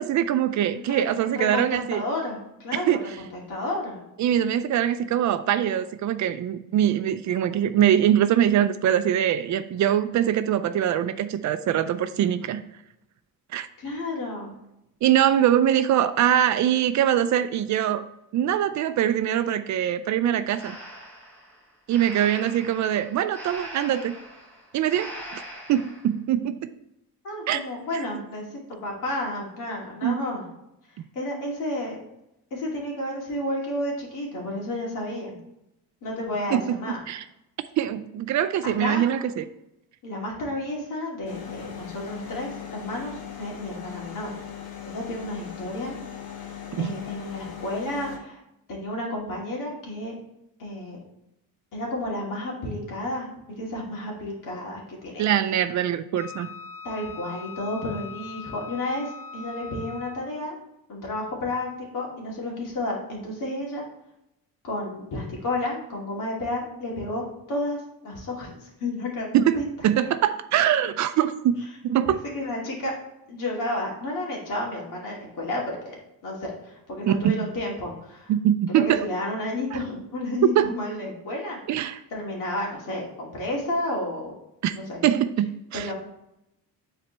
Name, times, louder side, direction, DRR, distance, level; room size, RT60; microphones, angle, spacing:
voice 1, 0.0-2.0 2.7-3.1 4.2-12.6 13.5-13.7 15.0-18.0 18.3-20.7 21.9-24.1 24.7-25.1 25.7-26.7 27.5-27.6 30.0-30.2 36.5-37.2 37.8-39.4 46.7-46.9 55.2-56.5 69.3-72.2 77.1-77.4 78.3-79.0 80.6-80.7 81.7-82.0 84.6-84.8 85.0-85.9, right 10 dB, 55° right, 12 dB, 0.4 m, -23 dB
voice 2, 0.7-1.0 1.3-4.0 13.8-14.5 27.2-30.5 31.1-32.0 32.5-35.4 36.0-37.0 38.6-39.0 40.0-44.3 44.9-46.0 46.8-48.4 48.7-50.1 50.6-51.0 51.7-55.2 56.8-60.5 60.9-63.9 64.6-69.7 72.1-72.9 73.3-75.9 76.2-78.3 78.7-83.0 83.3-84.3 84.7-85.0 85.7-85.9, left 1 dB, 65° left, -2 dB, 2.3 m, -31 dB
Breathing, 20.5-26.1, equal, 5° left, 1.4 m, -41 dB
sound 1, 41.2-48.2, left 9 dB, 90° left, 1.6 m, -39 dB
Wind instrument woodwind instrument, 56.1-60.4, left 5 dB, 40° left, 0.7 m, -41 dB
9.6 x 4.2 x 3.3 m, 0.86 s
cardioid pair, 170°, 35 cm